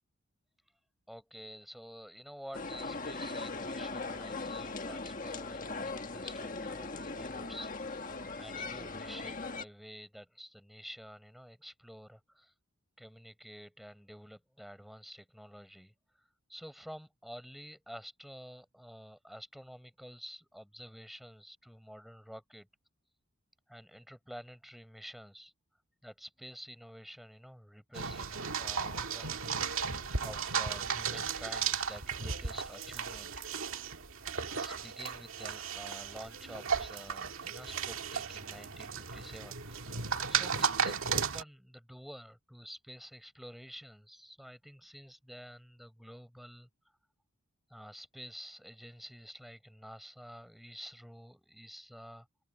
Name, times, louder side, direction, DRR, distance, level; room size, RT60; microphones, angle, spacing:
voice 1, 1.1-7.7 8.3-12.5 13.0-15.9 16.5-22.7 23.7-25.5 26.0-29.6 30.2-33.3 34.5-46.7 47.7-52.3, equal, ahead, 5.4 m, -50 dB
sound 1, 2.5-9.6, left 3 dB, 35° left, 1.6 m, -39 dB
sound 2, 27.9-41.4, right 6 dB, 70° right, 2.0 m, -35 dB
open air
head